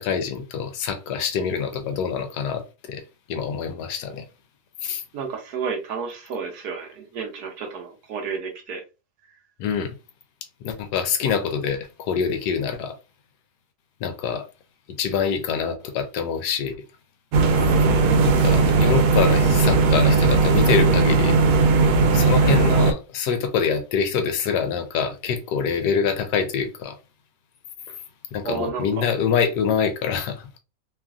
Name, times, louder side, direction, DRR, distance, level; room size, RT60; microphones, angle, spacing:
voice 1, 0.0-3.0 3.3-4.2 4.8-5.0 9.6-9.9 10.6-12.9 14.0-14.4 15.0-16.8 18.2-21.4 22.1-27.0 28.3-30.5, left 6 dB, 75° left, 1.1 m, -25 dB
voice 2, 5.1-8.8 17.8-18.0 28.4-29.1, right 6 dB, 70° right, 1.1 m, -31 dB
sound 1, 17.3-22.9, right 4 dB, 90° right, 1.2 m, -17 dB
3.0 x 2.5 x 2.3 m
omnidirectional pair, 1.9 m